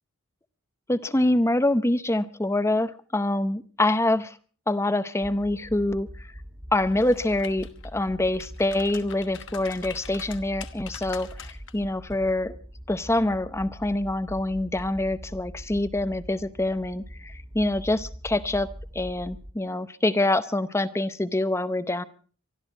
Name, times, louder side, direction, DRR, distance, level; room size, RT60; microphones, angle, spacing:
voice 1, 0.9-4.4 4.7-6.3 6.7-12.6 12.9-18.7 18.9-22.0, left 1 dB, 10° left, 13 dB, 0.7 m, -25 dB
sound 1, 5.2-19.5, equal, 20° right, 2.0 m, -43 dB
sound 2, 6.9-7.9 8.3-11.7 12.1-12.3, left 8 dB, 55° left, 1.3 m, -44 dB
24.0 x 13.0 x 4.4 m, 0.42 s
head